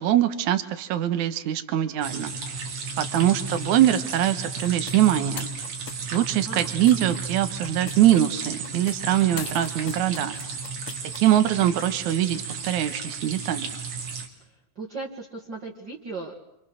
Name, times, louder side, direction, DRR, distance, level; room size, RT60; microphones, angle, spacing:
voice 1, 0.0-2.6 3.0-5.5 6.1-10.3 11.2-13.7, right 12 dB, 75° right, 9 dB, 2.6 m, -23 dB
sound 1, 2.0-14.3, right 4 dB, 90° right, 3.9 m, -34 dB
sound 2, 4.6-7.2 7.6-8.2 8.6-11.2, left 8 dB, 65° left, 2.1 m, -41 dB
voice 2, 6.1-6.7 14.8-16.4, right 3 dB, 40° right, -4 dB, 2.6 m, -37 dB
27.5 x 27.0 x 6.4 m, 0.85 s
omnidirectional pair, 3.5 m